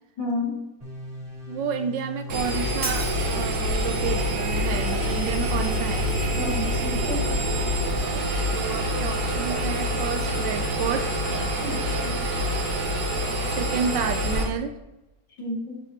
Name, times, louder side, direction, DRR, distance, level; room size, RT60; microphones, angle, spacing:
voice 1, 0.2-0.6 6.4-7.2 11.6-12.2 15.4-15.8, left 2 dB, 65° left, -4 dB, 2.8 m, -31 dB
sound 1, 0.8-8.1, left 1 dB, 40° right, 2.8 m, -39 dB
voice 2, 1.5-6.1 8.1-11.1 13.6-14.7, right 7 dB, 75° right, 8 dB, 1.2 m, -30 dB
Engine, 2.3-14.4, equal, 55° right, 1.7 m, -26 dB
Shatter, 2.8-3.8, right 2 dB, 15° right, 0.8 m, -34 dB
9.5 x 4.5 x 2.8 m, 1.0 s
omnidirectional pair, 2.1 m